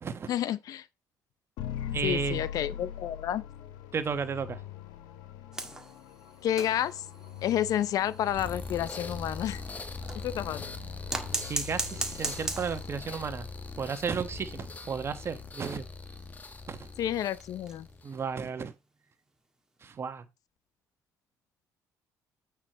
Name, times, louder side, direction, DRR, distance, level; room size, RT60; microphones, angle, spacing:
voice 1, 0.3-0.8 2.0-3.4 6.4-7.0 7.4-9.6 10.2-10.6 17.0-17.9, left 11 dB, 60° left, 0.6 m, -30 dB
sound 1, 1.6-13.7, left 10 dB, 85° left, 1.1 m, -43 dB
voice 2, 1.9-2.4 3.9-4.6 11.4-13.5 13.8-15.9 16.7-16.9 18.0-18.7 19.8-20.3, right 6 dB, 40° right, 1.3 m, -33 dB
sound 2, 5.5-10.3 11.1-13.0 13.3-13.4 13.7-13.8 14.2-14.3 14.9-18.0 18.4-18.7 19.8-19.9, right 2 dB, 10° right, 1.7 m, -39 dB
sound 3, 8.3-18.3, left 3 dB, 25° left, 1.2 m, -41 dB
8.6 x 4.7 x 4.5 m
cardioid pair, 100°, 7 cm